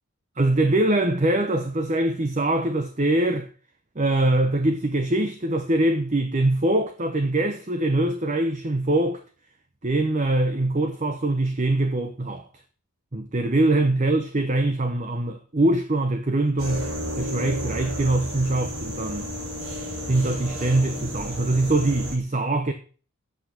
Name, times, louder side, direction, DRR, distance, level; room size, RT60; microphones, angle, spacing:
voice 1, 0.4-3.5 4.0-9.2 9.8-12.4 13.1-19.3 20.1-22.7, right 2 dB, 30° right, 0.9 m, -23 dB
sound 1, 16.6-22.2, equal, 70° right, 3.0 m, -32 dB
10.5 x 8.6 x 5.9 m
head